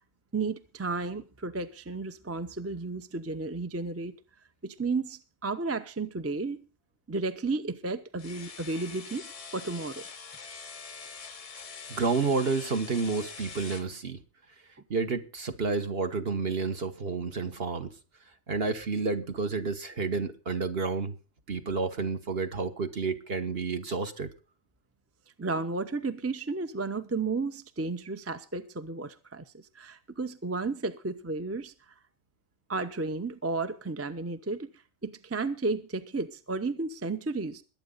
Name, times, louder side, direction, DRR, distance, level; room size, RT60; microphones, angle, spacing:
voice 1, 0.3-4.1 4.6-6.6 7.1-9.3 9.5-10.0 25.4-31.9 32.7-34.7 35.0-37.6, right 3 dB, 15° right, 0.6 m, -33 dB
sound 1, 8.2-13.9, left 5 dB, 35° left, 0.6 m, -44 dB
voice 2, 11.9-14.2 14.9-18.0 18.5-21.1 21.5-24.3, right 4 dB, 45° right, 1.5 m, -30 dB
21.5 x 8.7 x 3.9 m
omnidirectional pair, 1.4 m